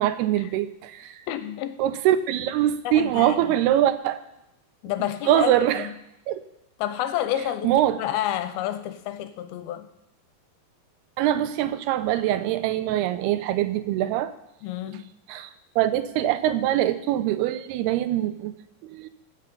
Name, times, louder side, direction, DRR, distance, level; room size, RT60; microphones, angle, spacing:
voice 1, 0.0-1.2 1.8-4.2 5.3-5.9 6.3-6.4 7.6-8.0 11.2-14.3 15.3-15.5 15.8-18.6 18.8-19.1, right 12 dB, 90° right, 2.7 m, -23 dB
voice 2, 1.3-1.8 2.9-3.6 4.8-5.9 6.8-9.9 14.6-15.0, left 12 dB, 80° left, 2.6 m, -30 dB
15.5 x 6.4 x 5.4 m
omnidirectional pair, 4.5 m